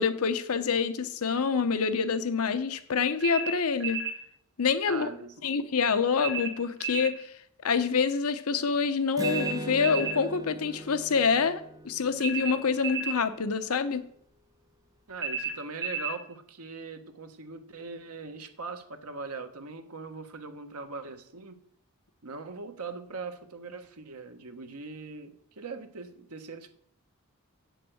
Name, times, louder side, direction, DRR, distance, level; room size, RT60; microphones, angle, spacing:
voice 1, 0.0-4.0 4.6-5.1 5.4-7.3 7.6-14.1, left 5 dB, 75° left, 12 dB, 0.7 m, -27 dB
sound 1, 3.2-4.2 6.2-7.2 9.2-10.2 12.2-13.2 15.2-16.2, right 5 dB, 55° right, 1.9 m, -33 dB
voice 2, 4.8-5.3 15.1-21.6 22.2-26.7, right 4 dB, 90° right, 7 dB, 1.1 m, -41 dB
Acoustic guitar, 9.2-12.8, right 1 dB, 15° right, 0.9 m, -38 dB
7.9 x 6.6 x 7.8 m, 0.67 s
head